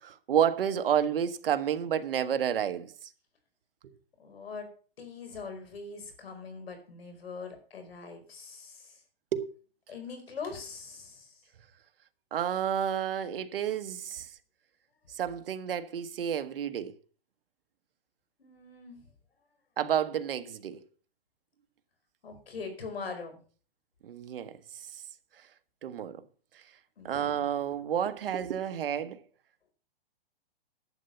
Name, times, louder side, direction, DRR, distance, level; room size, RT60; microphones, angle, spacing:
voice 1, 0.0-2.9 9.3-9.5 12.3-14.3 15.1-16.9 19.8-20.8 24.0-24.5 25.8-26.2 27.0-29.2, right 9 dB, 70° right, 1.3 m, -30 dB
voice 2, 4.2-4.7 5.0-9.0 9.9-11.4 18.4-19.0 22.2-23.4 27.0-27.5, left 4 dB, 85° left, 4.8 m, -42 dB
11.5 x 8.1 x 5.7 m
hypercardioid pair, 160°, 29 cm